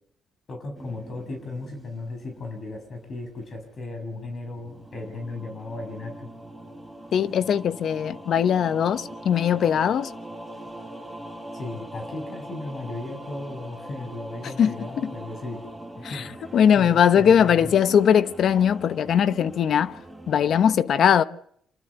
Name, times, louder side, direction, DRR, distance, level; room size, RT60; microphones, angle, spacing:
voice 1, 0.5-6.3 11.5-15.6 16.0-17.7, left 2 dB, 45° left, 6.1 m, -36 dB
sound 1, 0.7-3.8 4.3-20.7, right 1 dB, ahead, 7.8 m, -42 dB
voice 2, 7.1-10.1 14.6-15.1 16.0-16.3 16.5-20.0 20.3-21.2, left 8 dB, 65° left, 1.0 m, -20 dB
27.5 x 13.0 x 8.0 m
cardioid pair, 90°, 0 cm